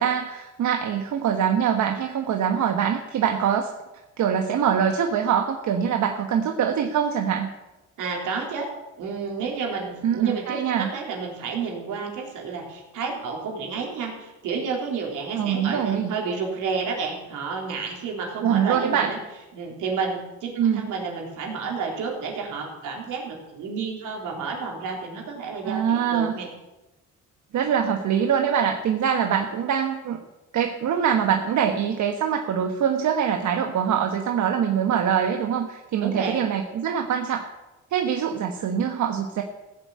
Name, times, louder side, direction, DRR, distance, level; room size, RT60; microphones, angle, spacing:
voice 1, 0.0-3.7 4.2-7.5 10.0-10.9 15.4-16.1 18.4-19.1 20.6-20.9 25.6-26.4 27.5-30.2 30.5-37.5 37.9-39.4, right 8 dB, 70° right, 5 dB, 1.3 m, -23 dB
voice 2, 8.0-8.7 9.0-19.2 19.5-26.5 36.0-36.4, right 5 dB, 85° right, 0 dB, 3.8 m, -30 dB
16.0 x 7.5 x 8.4 m, 1.0 s
cardioid pair, 90°, 30 cm